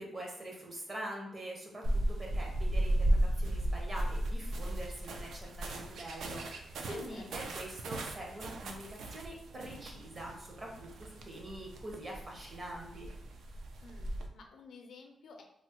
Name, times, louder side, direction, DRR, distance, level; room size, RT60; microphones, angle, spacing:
voice 1, 0.0-13.1, right 1 dB, 30° right, -1 dB, 0.7 m, -44 dB
sound 1, 1.8-14.3, right 1 dB, 75° right, 0.3 m, -35 dB
voice 2, 6.8-7.5 13.8-15.4, left 4 dB, 70° left, 3 dB, 0.4 m, -53 dB
3.1 x 2.0 x 2.8 m, 0.76 s
wide cardioid pair, 145°, 0 cm